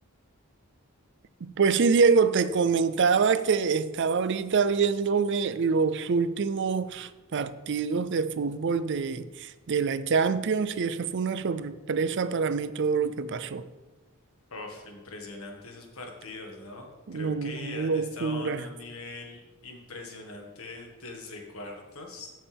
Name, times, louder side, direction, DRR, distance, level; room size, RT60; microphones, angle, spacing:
voice 1, 1.4-13.6 17.1-18.7, right 5 dB, 55° right, 0.5 m, -25 dB
voice 2, 14.5-22.3, left 3 dB, 70° left, 1.7 m, -42 dB
13.0 x 6.5 x 3.5 m
head